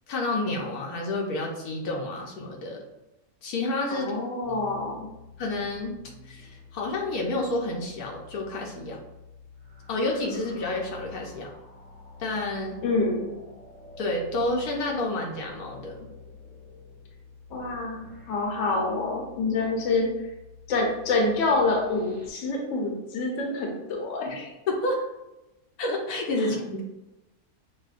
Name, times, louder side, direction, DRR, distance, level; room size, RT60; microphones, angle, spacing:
voice 1, 0.1-2.8 3.4-4.1 4.5-4.7 5.4-6.0 6.2-9.0 9.9-11.5 12.2-12.8 14.0-16.1 24.2-24.4 24.7-25.0 25.8-26.8, left 2 dB, 75° left, 0 dB, 1.2 m, -29 dB
voice 2, 3.9-5.1 12.8-13.3 17.5-20.1 20.7-24.5 26.4-26.5, left 3 dB, 60° left, 0 dB, 1.0 m, -27 dB
sound 1, 4.4-22.3, left 3 dB, 50° right, 1.2 m, -48 dB
6.2 x 2.1 x 2.4 m, 0.98 s
omnidirectional pair, 1.6 m